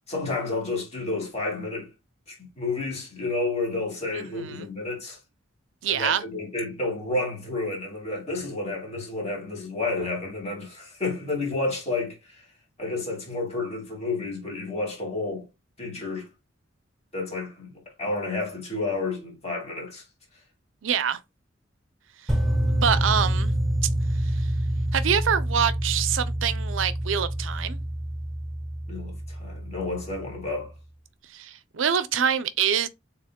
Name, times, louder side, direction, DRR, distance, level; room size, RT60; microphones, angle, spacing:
voice 1, 0.1-1.9 2.3-5.2 5.9-12.4 12.8-15.5 15.8-16.3 17.1-20.0 28.9-30.7, left 2 dB, 35° left, 2.3 m, -30 dB
voice 2, 4.1-4.7 5.8-6.2 20.8-21.2 22.7-23.5 24.2-24.5 24.9-27.8 31.3-32.9, right 8 dB, 80° right, 0.5 m, -25 dB
sound 1, 22.3-30.4, right 1 dB, ahead, 1.2 m, -27 dB
7.0 x 3.0 x 2.2 m
head